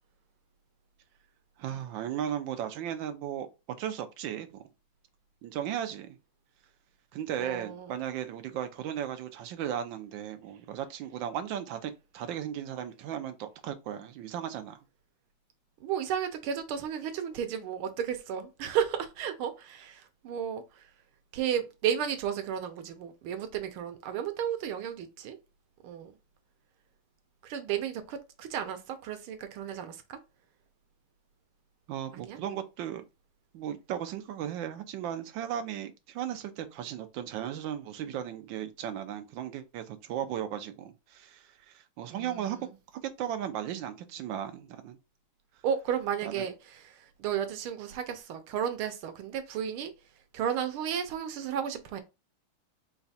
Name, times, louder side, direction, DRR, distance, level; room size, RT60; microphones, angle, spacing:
voice 1, 1.6-3.5 3.8-4.6 5.4-6.2 7.1-14.8 31.9-33.0 33.5-42.6 43.0-45.0 46.2-46.5, right 10 dB, 70° right, 1.3 m, -36 dB
voice 2, 7.4-7.9 15.8-20.9 21.3-25.4 25.8-26.1 27.4-30.2 32.1-32.4 42.1-42.7 45.6-49.9 50.3-52.0, right 8 dB, 90° right, 1.6 m, -33 dB
4.9 x 2.3 x 4.0 m
omnidirectional pair, 2.3 m